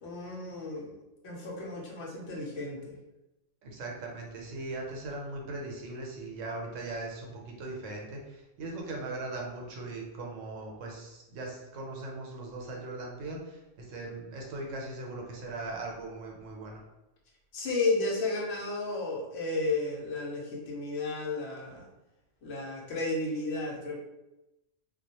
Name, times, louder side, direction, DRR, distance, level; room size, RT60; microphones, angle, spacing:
voice 1, 0.0-0.9 1.2-2.9 17.5-21.9 22.4-24.0, left 3 dB, 65° left, -3 dB, 0.8 m, -33 dB
voice 2, 3.6-8.2 8.6-13.6 13.9-16.8, right 2 dB, 85° right, 0 dB, 1.0 m, -39 dB
2.3 x 2.1 x 2.8 m, 0.97 s
omnidirectional pair, 1.3 m